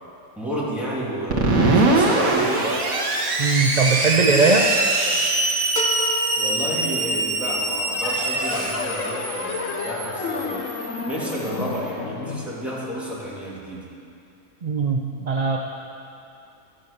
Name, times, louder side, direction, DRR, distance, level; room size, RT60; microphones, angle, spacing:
voice 1, 0.4-2.8 6.4-10.7 11.1-13.9, equal, ahead, -7 dB, 2.5 m, -31 dB
Screech, 1.3-11.8, right 2 dB, 75° right, 1.9 m, -23 dB
voice 2, 3.4-4.7 14.6-15.6, right 4 dB, 40° right, 0 dB, 0.6 m, -20 dB
sound 1, 5.8-7.5, left 1 dB, 40° left, 1.1 m, -32 dB
sound 2, 7.9-13.2, left 4 dB, 65° left, 1.2 m, -31 dB
12.5 x 8.9 x 6.7 m, 2.6 s
omnidirectional pair, 1.5 m